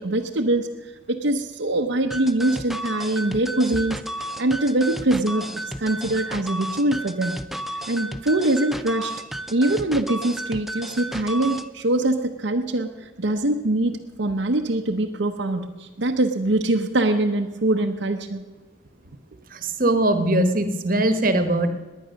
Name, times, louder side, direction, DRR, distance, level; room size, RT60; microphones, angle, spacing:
voice 1, 0.0-4.0 4.4-7.4 7.7-9.1 9.5-18.4, right 1 dB, 65° right, 2 dB, 0.8 m, -23 dB
sound 1, 2.1-11.7, right 1 dB, ahead, 0.4 m, -33 dB
voice 2, 19.5-21.7, right 1 dB, 45° right, 9 dB, 1.2 m, -21 dB
18.5 x 10.0 x 6.4 m, 1.3 s
head